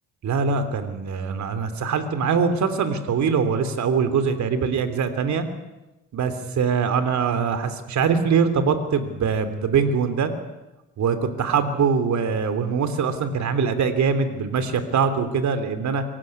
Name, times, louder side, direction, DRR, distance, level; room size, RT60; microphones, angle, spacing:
voice 1, 0.2-5.4 6.1-10.3 11.0-16.0, right 6 dB, 70° right, 10 dB, 3.1 m, -23 dB
25.0 x 16.0 x 9.6 m, 1.0 s
cardioid pair, 90°, 30 cm